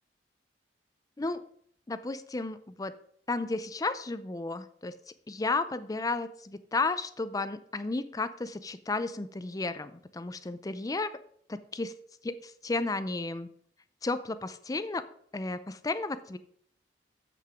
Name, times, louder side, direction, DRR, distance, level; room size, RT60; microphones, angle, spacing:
voice 1, 1.9-2.9 3.3-4.9 5.3-11.1 11.5-11.9 12.2-13.5 14.0-15.0 15.3-16.4, left 3 dB, 20° left, 13 dB, 0.4 m, -33 dB
7.8 x 6.5 x 4.9 m, 0.63 s
head